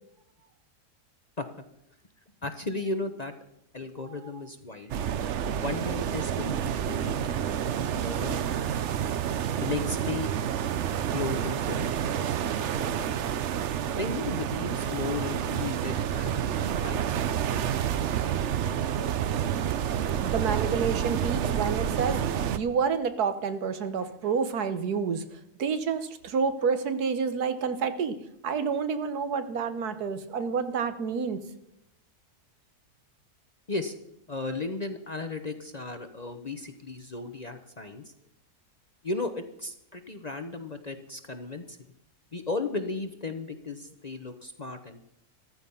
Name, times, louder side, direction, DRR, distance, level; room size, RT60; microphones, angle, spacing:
voice 1, 2.4-3.3 3.7-4.9 5.6-8.9 9.6-10.3 11.1-12.3 12.7-13.3 13.9-17.2 33.7-34.0 34.3-38.0 39.0-41.8 42.3-45.1, left 3 dB, 35° left, 7 dB, 0.8 m, -35 dB
sound 1, 4.9-22.6, right 9 dB, 60° right, 0.8 m, -29 dB
voice 2, 20.2-22.2 22.6-28.1 28.4-31.4, right 5 dB, 80° right, 10 dB, 1.6 m, -29 dB
14.0 x 14.0 x 5.6 m, 0.78 s
omnidirectional pair, 1.6 m